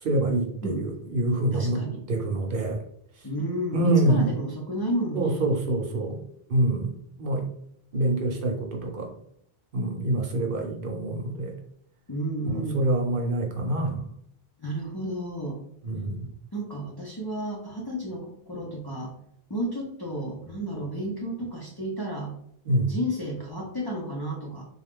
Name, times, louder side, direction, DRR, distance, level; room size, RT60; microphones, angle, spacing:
voice 1, 0.0-1.8 2.1-2.8 3.7-4.3 5.1-6.2 6.5-6.9 7.2-7.5 7.9-9.1 9.7-11.5 12.4-14.0 15.8-16.3 22.7-23.0, right 1 dB, 60° right, 1 dB, 0.8 m, -26 dB
voice 2, 1.5-2.0 3.2-5.4 12.1-12.8 14.6-15.6 16.5-19.1 19.5-22.3 22.8-24.7, equal, 25° left, -3 dB, 0.6 m, -32 dB
3.7 x 2.3 x 3.6 m, 0.71 s
omnidirectional pair, 1.0 m